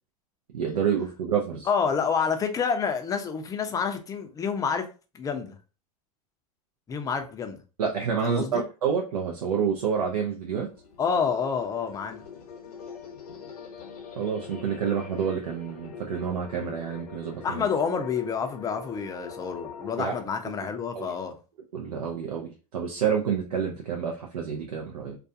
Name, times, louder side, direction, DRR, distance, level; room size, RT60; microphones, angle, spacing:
voice 1, 0.5-1.7 7.8-10.7 14.2-17.7 20.0-20.2 20.4-20.5 20.9-21.1 21.7-25.2, right 7 dB, 90° right, 0.5 m, -28 dB
voice 2, 1.7-4.9 5.1-5.6 6.9-7.6 8.2-8.6 11.0-12.2 17.4-21.4, left 6 dB, 20° left, 0.4 m, -28 dB
sound 1, 10.7-20.2, left 6 dB, 75° left, 0.8 m, -43 dB
2.4 x 2.2 x 2.6 m
hypercardioid pair, 105°, 19 cm